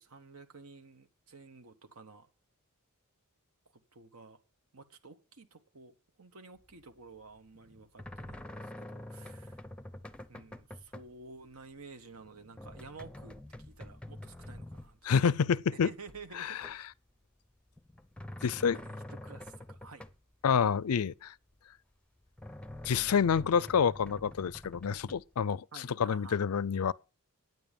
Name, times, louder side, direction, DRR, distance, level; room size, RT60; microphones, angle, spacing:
voice 1, 0.0-2.3 3.7-4.4 4.7-9.7 10.3-15.4 15.7-16.9 18.5-20.0 25.7-26.5, right 4 dB, 70° right, 1.2 m, -52 dB
sound 1, 6.6-6.9 7.2-11.1 11.4-11.8 12.1-15.6 16.0-17.1 17.4-20.3 20.7-20.8 21.5-21.6 22.2-25.3, left 1 dB, 5° left, 0.6 m, -47 dB
voice 2, 15.0-15.9 16.4-16.5 18.4-18.8 20.4-21.3 22.8-25.6 26.0-26.9, left 6 dB, 75° left, 0.4 m, -28 dB
9.5 x 9.3 x 5.2 m
head